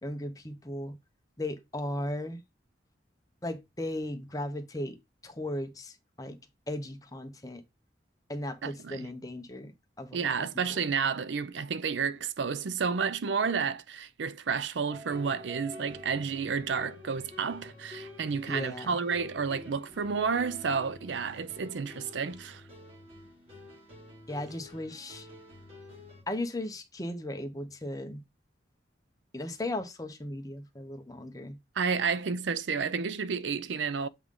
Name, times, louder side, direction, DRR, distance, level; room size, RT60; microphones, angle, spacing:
voice 1, 0.0-0.9 1.4-2.4 3.4-5.0 5.2-6.4 6.7-7.6 8.3-9.7 10.0-10.3 10.8-10.9 18.5-18.9 24.3-25.3 26.3-28.2 29.3-31.6, left 1 dB, 20° left, 0.8 m, -36 dB
voice 2, 8.6-9.1 10.1-22.6 31.8-34.1, right 5 dB, 75° right, 0.5 m, -31 dB
sound 1, 14.9-26.2, left 1 dB, 30° right, 2.4 m, -48 dB
7.9 x 3.7 x 3.7 m
head